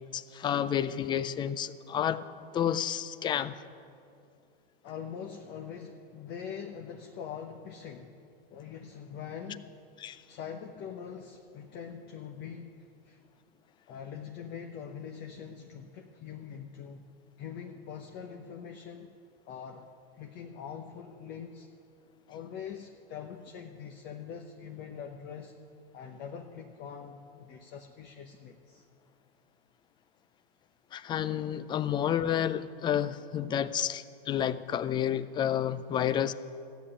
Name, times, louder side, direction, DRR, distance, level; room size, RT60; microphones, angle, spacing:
voice 1, 0.1-2.2 2.5-3.6 10.0-10.2 30.9-36.3, left 9 dB, 15° left, 15 dB, 0.3 m, -30 dB
voice 2, 4.8-8.2 8.5-9.7 10.3-13.2 13.9-17.1 17.4-19.1 19.5-19.9 20.1-21.7 22.3-25.5 25.9-28.8, left 7 dB, 35° left, 4 dB, 0.9 m, -43 dB
14.0 x 8.1 x 9.9 m, 2.4 s
hypercardioid pair, 115°, 30 cm